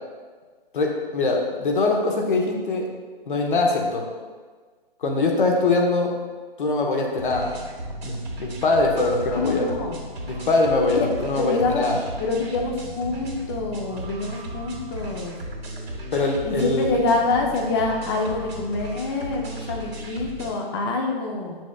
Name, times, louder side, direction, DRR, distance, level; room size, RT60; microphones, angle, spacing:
voice 1, 0.7-2.9 3.3-4.1 5.0-6.1 6.6-7.6 8.0-9.7 10.3-12.0 16.1-16.9, left 3 dB, 55° left, 1 dB, 1.2 m, -22 dB
sound 1, 7.2-20.5, equal, 80° right, 1.8 m, -35 dB
voice 2, 9.3-10.0 11.3-11.9 12.2-15.4 16.4-21.6, left 3 dB, 25° left, 1 dB, 0.7 m, -26 dB
7.2 x 6.1 x 2.3 m, 1.5 s
figure-of-eight pair, 140°, 30 cm